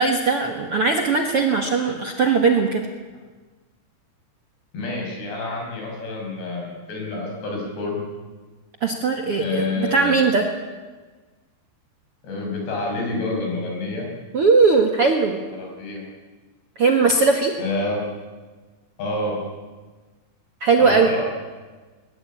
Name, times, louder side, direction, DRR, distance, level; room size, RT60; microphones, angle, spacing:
voice 1, 0.0-2.8 8.8-10.5 14.3-15.4 16.8-17.5 20.6-21.1, right 4 dB, 60° right, 4 dB, 1.6 m, -19 dB
voice 2, 4.7-8.0 9.4-10.2 12.2-14.1 15.5-16.0 17.6-18.1 19.0-19.4 20.8-21.2, left 2 dB, 80° left, 0 dB, 8.3 m, -28 dB
21.0 x 21.0 x 8.7 m, 1.3 s
omnidirectional pair, 4.8 m